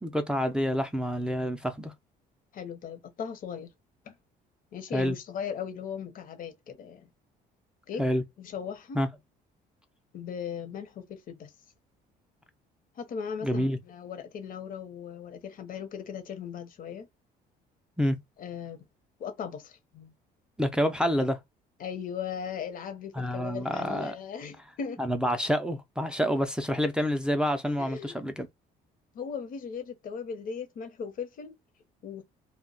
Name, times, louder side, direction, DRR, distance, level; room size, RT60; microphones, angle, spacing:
voice 1, 0.0-1.9 4.9-5.2 8.0-8.2 8.9-9.1 13.4-13.8 18.0-18.2 20.6-21.4 23.1-24.1 25.0-28.5, equal, 5° right, 0.4 m, -28 dB
voice 2, 2.5-3.7 4.1-4.2 4.7-7.1 7.9-8.0 8.4-9.0 10.1-11.5 13.0-17.1 18.4-18.8 19.2-20.1 21.8-25.0 27.8-28.2 29.1-31.6 32.0-32.2, left 7 dB, 55° left, 0.8 m, -38 dB
2.2 x 2.1 x 3.7 m
cardioid pair, 110°, 17 cm